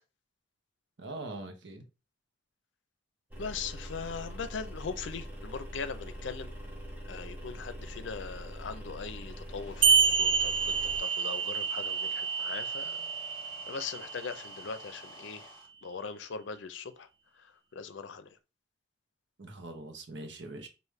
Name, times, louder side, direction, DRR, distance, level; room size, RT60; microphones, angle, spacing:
voice 1, 1.0-1.8 19.4-20.7, right 2 dB, 75° right, 0.9 m, -42 dB
sound 1, 3.3-11.0, equal, 10° right, 1.4 m, -43 dB
voice 2, 3.4-6.5 7.0-10.7 11.0-13.1 13.7-15.5 15.8-17.1 17.4-18.3, left 5 dB, 85° left, 0.5 m, -40 dB
sound 2, 9.3-15.7, left 2 dB, 20° left, 1.1 m, -52 dB
sound 3, 9.8-14.8, right 6 dB, 30° right, 0.4 m, -28 dB
4.9 x 2.5 x 3.1 m
head